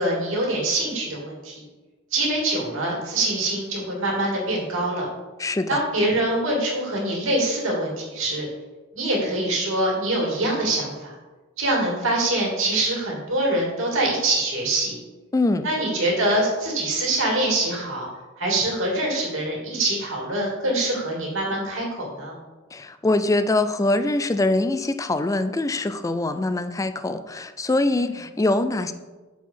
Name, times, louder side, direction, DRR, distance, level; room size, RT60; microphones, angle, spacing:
voice 1, 0.0-1.6 2.1-5.0 5.7-8.5 8.9-11.1 11.6-15.0 15.6-18.1 18.4-22.3, right 1 dB, 70° right, -2 dB, 2.8 m, -24 dB
voice 2, 5.4-5.8 15.3-15.7 22.7-28.9, left 2 dB, 15° left, 10 dB, 0.4 m, -23 dB
7.2 x 4.6 x 5.7 m, 1.2 s
head